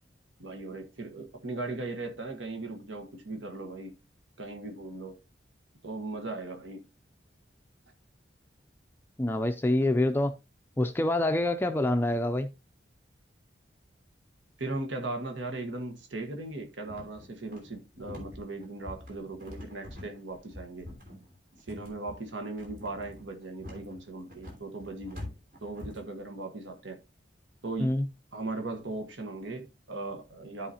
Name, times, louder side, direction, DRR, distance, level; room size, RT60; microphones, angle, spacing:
voice 1, 0.4-3.9 4.4-5.2 5.8-6.8 14.6-20.9 21.7-25.3 25.6-27.0 27.6-27.9 28.3-30.7, right 2 dB, 85° right, 1.3 m, -38 dB
voice 2, 9.2-10.3 10.8-12.5 27.8-28.0, left 1 dB, 10° left, 0.4 m, -26 dB
sound 1, 16.9-26.1, left 1 dB, 50° right, 3.0 m, -45 dB
13.0 x 4.9 x 2.7 m
head